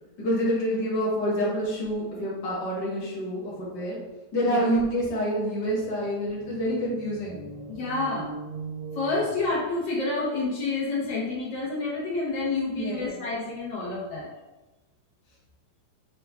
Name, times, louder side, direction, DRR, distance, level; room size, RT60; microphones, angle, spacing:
voice 1, 0.2-4.0 4.3-7.4 12.7-13.2, equal, 50° left, -6 dB, 1.2 m, -27 dB
sound 1, 5.2-10.0, right 4 dB, 85° right, 2.3 m, -42 dB
voice 2, 7.7-8.3 8.9-14.3, left 3 dB, 90° left, -6 dB, 1.0 m, -29 dB
6.0 x 2.4 x 3.3 m, 1.1 s
omnidirectional pair, 3.6 m